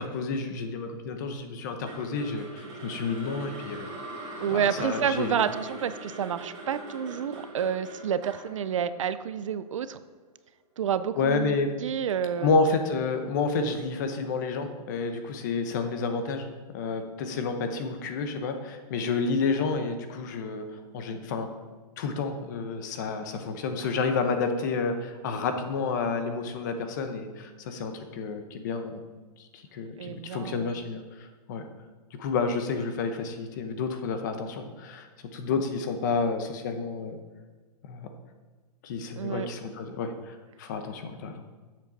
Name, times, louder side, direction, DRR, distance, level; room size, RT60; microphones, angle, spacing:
voice 1, 0.0-3.9 4.5-5.4 11.2-11.7 12.4-16.5 16.7-21.5 22.0-29.0 29.4-31.6 32.2-37.2 37.9-38.1 38.8-41.4, left 4 dB, 30° left, 7 dB, 0.8 m, -30 dB
sound 1, 1.9-10.0, right 1 dB, 20° right, 2.4 m, -42 dB
voice 2, 4.4-10.0 10.8-11.6 11.8-12.6 30.0-30.7 39.2-39.5, right 8 dB, 50° right, 13 dB, 0.4 m, -29 dB
11.0 x 7.5 x 4.0 m, 1.3 s
hypercardioid pair, 175°, 21 cm